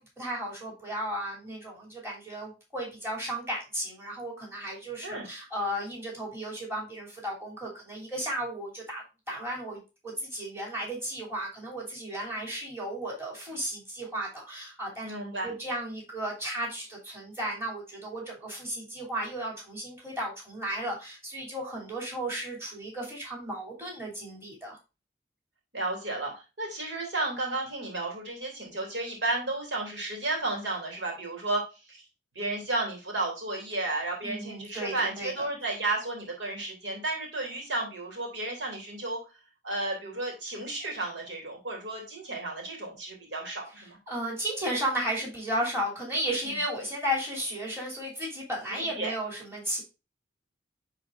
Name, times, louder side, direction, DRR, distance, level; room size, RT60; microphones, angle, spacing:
voice 1, 0.2-15.1 15.4-24.8 34.2-35.5 44.1-49.8, right 1 dB, 15° right, -3 dB, 3.0 m, -34 dB
voice 2, 15.0-15.5 25.7-31.6 31.9-32.0 32.3-39.2 39.6-44.0 46.4-46.5 48.7-49.1, right 2 dB, 85° right, 0 dB, 2.9 m, -33 dB
10.0 x 4.0 x 2.5 m, 0.29 s
head